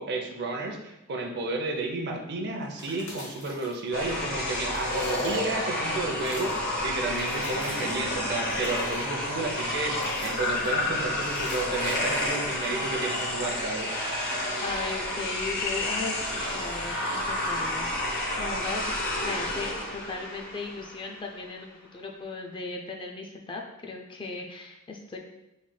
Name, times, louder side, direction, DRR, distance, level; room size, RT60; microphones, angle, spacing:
voice 1, 0.0-13.9, right 2 dB, 50° right, 2 dB, 0.6 m, -32 dB
sound 1, 2.6-4.2 4.5-5.8 6.1-6.7 7.1-8.0 8.4-9.2 9.9-10.8 11.2-12.9, left 2 dB, 75° left, 1.4 m, -43 dB
sound 2, 3.9-21.2, left 1 dB, 45° left, 1.0 m, -30 dB
voice 2, 14.6-25.2, left 3 dB, 25° left, 1 dB, 0.4 m, -37 dB
5.4 x 3.2 x 2.2 m, 0.93 s
head